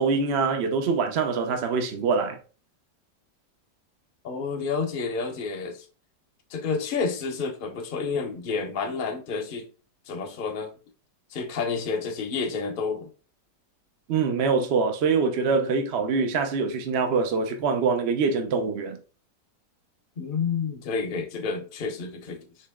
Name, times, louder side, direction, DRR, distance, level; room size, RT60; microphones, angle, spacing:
voice 1, 0.0-2.4 14.1-19.0, right 5 dB, 60° right, 0.7 m, -24 dB
voice 2, 4.2-5.9 6.5-9.7 10.1-10.7 11.3-13.1 20.2-22.5, left 5 dB, 45° left, 0.7 m, -30 dB
4.4 x 3.1 x 3.5 m
omnidirectional pair, 1.9 m